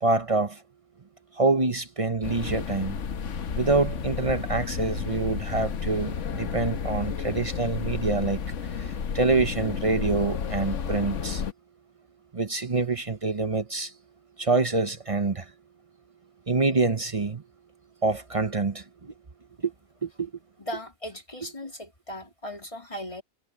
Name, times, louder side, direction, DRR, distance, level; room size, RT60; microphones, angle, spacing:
voice 1, 0.0-0.6 1.4-3.0 3.5-8.4 8.8-11.4 12.3-13.9 14.4-15.4 16.5-17.4 18.0-19.1 19.6-19.7 20.0-20.3, right 3 dB, 30° right, 0.8 m, -26 dB
sound 1, 2.2-11.5, left 6 dB, 65° left, 1.4 m, -32 dB
voice 2, 20.6-23.2, left 1 dB, 25° left, 3.2 m, -38 dB
omnidirectional pair, 1.4 m